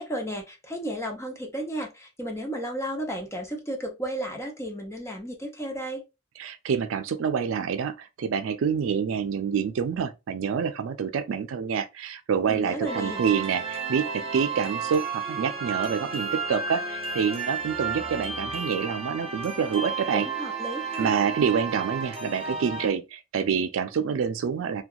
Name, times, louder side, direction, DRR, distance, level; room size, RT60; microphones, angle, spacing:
voice 1, 0.0-6.0 12.5-13.3 20.1-21.2, equal, 15° left, 0.5 m, -33 dB
voice 2, 6.4-20.3 21.0-24.8, right 6 dB, 90° right, 0.4 m, -27 dB
sound 1, 12.8-22.9, right 5 dB, 30° right, 0.6 m, -32 dB
2.7 x 2.2 x 2.3 m
head